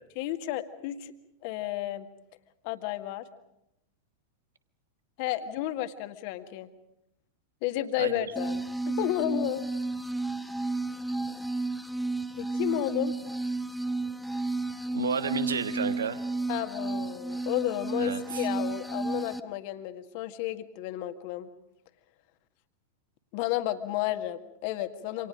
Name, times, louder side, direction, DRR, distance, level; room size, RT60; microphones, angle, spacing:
voice 1, 0.2-1.1 1.4-2.1 2.6-3.3 5.2-6.7 7.6-9.7 12.4-13.1 16.5-21.5 23.3-25.3, left 14 dB, 45° left, 9 dB, 1.9 m, -32 dB
sound 1, 8.4-19.4, right 2 dB, ahead, 1.2 m, -32 dB
voice 2, 14.9-16.2 18.0-18.5, right 6 dB, 70° right, 11 dB, 1.5 m, -31 dB
28.5 x 27.0 x 5.1 m, 0.82 s
figure-of-eight pair, 90°, 0 cm